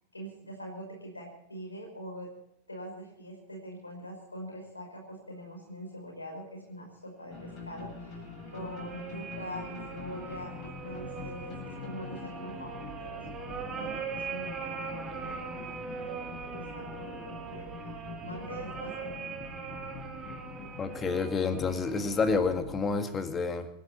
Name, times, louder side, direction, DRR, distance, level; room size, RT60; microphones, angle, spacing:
voice 1, 0.1-2.3 2.7-19.5, equal, 80° left, 1 dB, 5.3 m, -44 dB
sound 1, 7.3-22.9, left 4 dB, 35° left, 7.5 m, -45 dB
sound 2, 7.9-22.3, right 5 dB, 20° right, 2.6 m, -41 dB
voice 2, 20.8-23.7, left 4 dB, 20° left, 8 dB, 2.0 m, -29 dB
26.5 x 11.5 x 4.3 m, 0.78 s
figure-of-eight pair, 90°, 0 cm